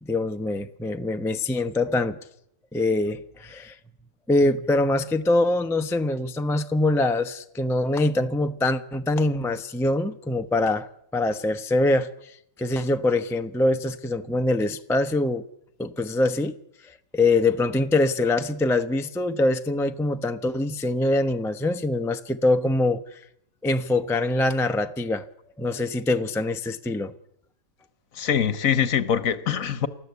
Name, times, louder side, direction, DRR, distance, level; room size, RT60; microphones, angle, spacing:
voice 1, 0.0-2.2 2.7-3.8 4.3-10.9 11.1-12.3 12.6-15.4 15.8-16.6 16.9-23.2 23.6-25.3 25.6-27.1, left 2 dB, 5° left, 0.3 m, -24 dB
voice 2, 28.1-29.9, left 8 dB, 55° left, 1.3 m, -23 dB
29.5 x 13.5 x 8.2 m
omnidirectional pair, 1.9 m